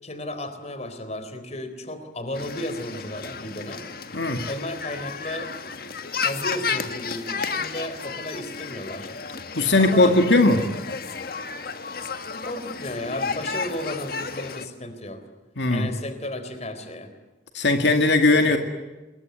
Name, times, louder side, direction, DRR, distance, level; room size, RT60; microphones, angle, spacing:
voice 1, 0.0-3.9 4.5-5.5 6.2-9.1 9.8-10.2 12.4-15.2 15.7-17.1 18.4-18.6, left 1 dB, 40° left, 9 dB, 3.8 m, -34 dB
sound 1, 2.3-14.7, left 5 dB, 55° left, 1.7 m, -32 dB
voice 2, 4.1-4.5 9.6-10.6 15.6-15.9 17.5-18.6, left 2 dB, 80° left, 5 dB, 2.3 m, -18 dB
28.5 x 21.5 x 9.5 m, 1.1 s
head